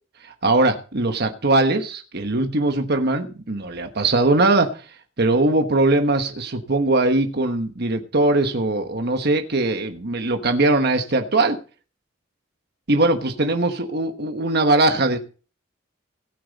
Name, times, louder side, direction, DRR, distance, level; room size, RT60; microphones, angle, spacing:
voice 1, 0.2-11.6 12.9-15.2, right 2 dB, 50° right, 6 dB, 1.2 m, -21 dB
16.5 x 8.6 x 4.1 m, 0.37 s
head